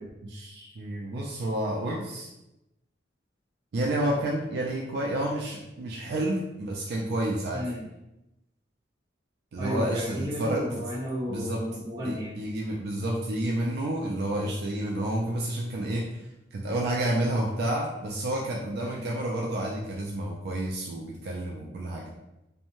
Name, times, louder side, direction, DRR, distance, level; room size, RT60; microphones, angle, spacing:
voice 1, 0.2-2.3 3.7-7.7 9.5-10.6 11.3-11.6 12.0-16.1 16.5-22.1, right 1 dB, 60° right, -2 dB, 0.4 m, -30 dB
voice 2, 7.5-7.8 9.6-12.4 18.8-19.2, equal, 20° right, -8 dB, 0.9 m, -33 dB
2.6 x 2.1 x 2.9 m, 0.92 s
head